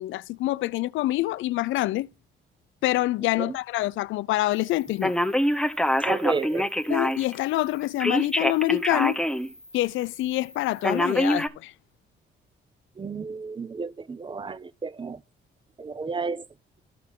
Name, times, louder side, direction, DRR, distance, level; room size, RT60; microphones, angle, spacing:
voice 1, 0.0-2.1 2.8-5.1 6.9-9.2 9.7-11.7, left 17 dB, 85° left, 0.4 m, -26 dB
Telephone, 5.0-7.3 8.0-9.5 9.9-10.0 10.8-11.5, equal, 5° left, 0.9 m, -24 dB
voice 2, 6.0-6.7 13.0-15.2 15.8-16.4, right 4 dB, 25° right, 0.7 m, -31 dB
13.5 x 4.5 x 3.7 m
cardioid pair, 90°, 20 cm